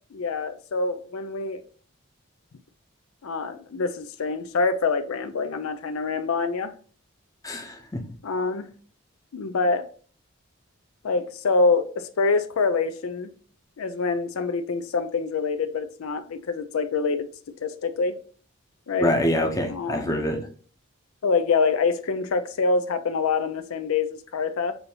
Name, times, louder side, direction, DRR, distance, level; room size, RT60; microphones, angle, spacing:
voice 1, 0.1-1.6 3.2-6.7 8.2-8.7 9.3-9.8 11.0-13.3 13.8-18.2 18.9-19.1 19.7-20.2 21.2-24.8, left 4 dB, 85° left, 0.5 m, -25 dB
voice 2, 7.4-8.0 19.0-20.5, equal, 15° left, 0.7 m, -25 dB
6.8 x 2.7 x 2.8 m
head